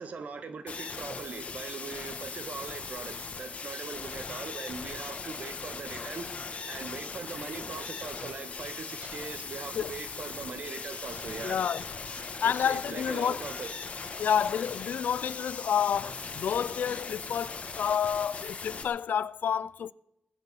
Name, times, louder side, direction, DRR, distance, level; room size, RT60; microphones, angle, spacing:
voice 1, 0.0-6.3 6.7-11.6 12.5-13.9, right 5 dB, 60° right, 1.4 m, -41 dB
sound 1, 0.7-18.8, left 4 dB, 50° left, 1.5 m, -39 dB
voice 2, 11.4-11.8 12.4-13.4 14.2-19.9, left 8 dB, 90° left, 0.4 m, -29 dB
19.5 x 8.1 x 7.0 m
wide cardioid pair, 170°, 3 cm